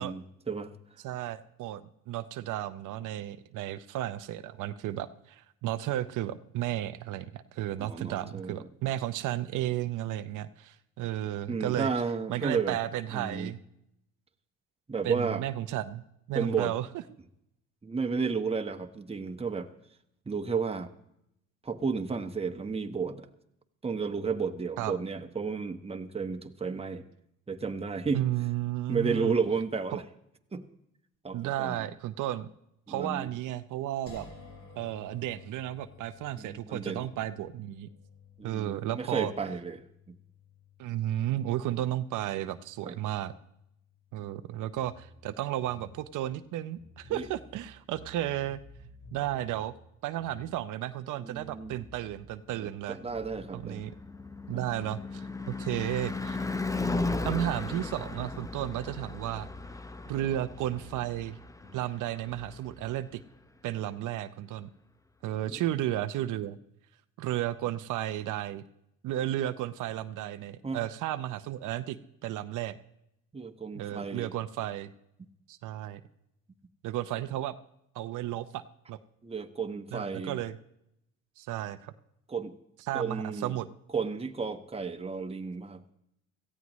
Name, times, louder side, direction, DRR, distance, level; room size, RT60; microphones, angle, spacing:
voice 1, 0.0-1.0 7.8-8.7 11.5-12.8 13.1-13.5 14.9-15.4 16.3-16.7 17.8-19.7 20.3-20.9 21.6-23.3 23.8-27.0 27.5-28.2 28.9-30.0 30.5-30.6 31.2-31.9 32.9-33.3 36.4-37.1 38.4-40.1 42.8-43.0 47.1-47.3 51.2-51.8 52.6-53.9 54.5-54.8 60.2-60.3 65.5-65.6 70.6-70.8 73.3-74.3 79.2-80.4 82.3-82.5 82.9-83.5 83.9-85.8, right 5 dB, 20° right, 6 dB, 1.2 m, -33 dB
voice 2, 1.0-11.9 12.3-13.6 15.0-16.0 16.3-16.8 24.8-24.9 28.1-29.3 31.3-32.5 32.9-34.3 34.8-37.9 38.4-39.3 40.8-43.3 44.1-48.6 49.1-49.7 50.0-53.0 53.5-53.9 54.5-56.4 57.2-59.5 60.1-61.4 61.7-63.2 63.6-64.7 65.2-66.6 67.2-68.6 69.0-72.8 73.7-74.9 75.5-76.0 76.8-77.6 77.9-78.6 78.9-79.0 79.9-80.6 81.4-81.9 82.9-83.7, right 13 dB, 85° right, 10 dB, 0.7 m, -33 dB
sound 1, 34.1-47.1, left 4 dB, 50° left, 5.2 m, -55 dB
sound 2, 44.7-51.0 51.3-55.6 55.9-60.2 60.5-63.0, equal, 90° left, 6.6 m, -53 dB
Car passing by / Truck / Engine, 52.8-63.0, left 3 dB, 10° left, 0.7 m, -36 dB
17.5 x 15.0 x 3.1 m, 0.78 s
cardioid pair, 90°, 30 cm